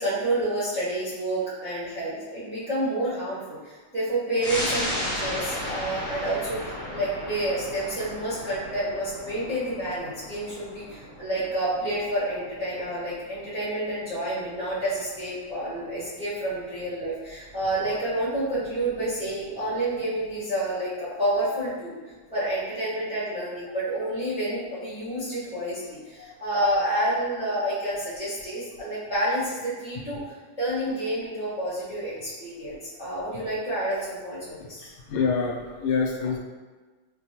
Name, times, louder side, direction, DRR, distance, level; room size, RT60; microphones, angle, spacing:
voice 1, 0.0-21.9 22.3-30.2 30.6-34.9, right 1 dB, 5° right, -13 dB, 0.5 m, -29 dB
sound 1, 4.4-15.4 15.8-15.9, left 1 dB, 45° left, 1.4 m, -35 dB
voice 2, 34.8-36.4, left 5 dB, 90° left, 0 dB, 1.5 m, -27 dB
4.2 x 2.3 x 2.8 m, 1.4 s
omnidirectional pair, 2.3 m